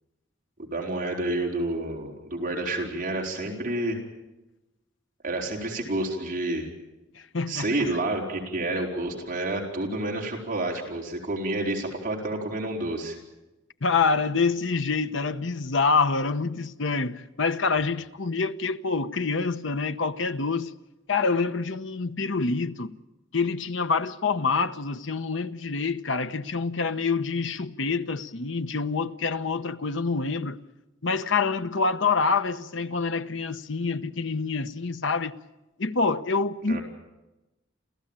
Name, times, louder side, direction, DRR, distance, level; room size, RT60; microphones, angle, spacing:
voice 1, 0.6-4.0 5.2-6.7 7.5-13.2 36.7-36.8, right 2 dB, 45° right, 4.4 m, -29 dB
voice 2, 7.1-7.7 13.8-20.7 21.1-22.9 23.3-30.6 31.0-35.3 35.8-36.8, left 4 dB, 75° left, 1.0 m, -26 dB
29.0 x 15.0 x 8.9 m
head